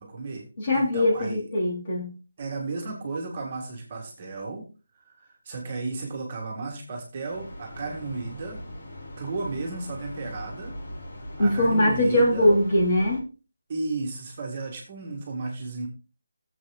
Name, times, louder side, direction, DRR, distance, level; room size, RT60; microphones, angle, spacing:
voice 1, 0.0-1.4 2.4-4.7 4.9-8.6 9.2-10.7 11.4-12.5 13.7-15.9, right 3 dB, 25° right, 0 dB, 1.8 m, -34 dB
voice 2, 0.6-2.1 11.4-13.2, left 1 dB, 30° left, -1 dB, 3.0 m, -21 dB
sound 1, 7.3-13.2, left 1 dB, 45° left, 3.7 m, -40 dB
15.5 x 7.5 x 2.4 m, 0.31 s
figure-of-eight pair, 175°, 0 cm